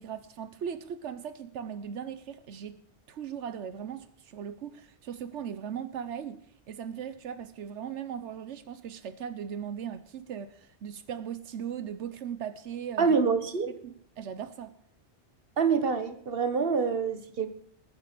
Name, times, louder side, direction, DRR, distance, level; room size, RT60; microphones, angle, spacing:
voice 1, 0.0-2.8 3.1-13.2 13.8-14.7, right 8 dB, 90° right, 1.2 m, -38 dB
voice 2, 13.0-13.7 15.6-17.5, right 5 dB, 55° right, 1.6 m, -26 dB
20.5 x 9.7 x 6.8 m
omnidirectional pair, 1.2 m